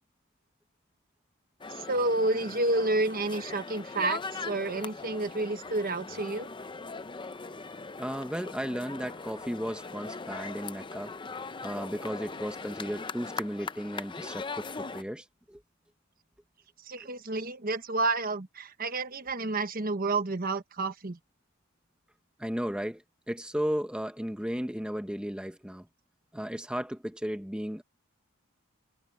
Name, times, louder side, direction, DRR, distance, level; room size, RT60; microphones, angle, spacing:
sound 1, 1.6-15.0, left 4 dB, 20° left, 0.6 m, -40 dB
voice 1, 1.7-6.5 16.8-21.2, right 2 dB, 40° right, 1.2 m, -30 dB
voice 2, 8.0-11.2 11.6-15.6 22.4-25.9 26.3-27.8, equal, 5° right, 1.0 m, -35 dB
head